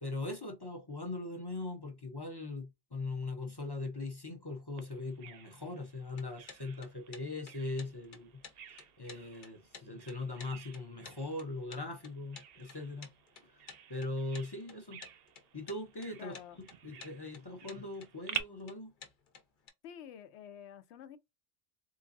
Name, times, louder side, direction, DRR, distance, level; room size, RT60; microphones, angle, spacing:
voice 1, 0.0-8.4 8.7-13.1 13.4-13.5 13.9-15.0 15.5-16.4 16.8-18.9, left 2 dB, 30° left, 0.6 m, -40 dB
Bird vocalization bird call bird song, 4.8-18.4, right 8 dB, 65° right, 0.7 m, -49 dB
sound 1, 6.1-19.7, left 5 dB, 50° left, 0.9 m, -53 dB
voice 2, 16.2-16.6 19.8-21.2, left 9 dB, 80° left, 0.9 m, -49 dB
3.8 x 2.4 x 2.5 m
omnidirectional pair, 1.1 m